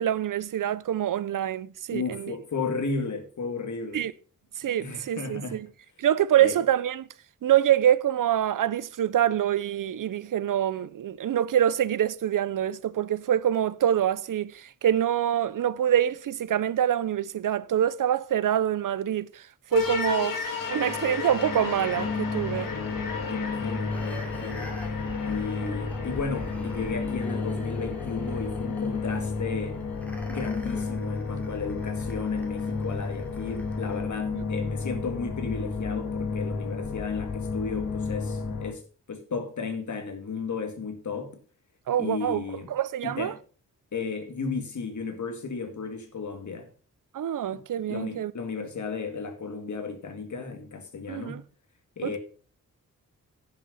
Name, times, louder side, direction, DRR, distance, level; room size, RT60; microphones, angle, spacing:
voice 1, 0.0-2.3 3.9-4.1 4.6-5.7 6.0-7.1 7.4-19.4 19.7-22.7 34.3-34.4 41.9-43.3 47.1-48.3 51.1-51.4 52.0-52.2, right 10 dB, 70° right, 0.6 m, -25 dB
voice 2, 1.9-4.0 4.8-5.6 6.4-6.6 22.7-24.7 25.2-29.8 30.3-38.8 39.1-41.4 42.0-42.7 43.0-43.4 43.9-46.7 47.9-51.4 52.0-52.2, left 4 dB, 60° left, 2.2 m, -34 dB
sound 1, 19.7-38.7, left 4 dB, 80° left, 2.9 m, -31 dB
sound 2, 22.6-34.0 34.5-34.6, equal, 5° left, 2.6 m, -45 dB
10.5 x 6.5 x 5.6 m
wide cardioid pair, 115°, 33 cm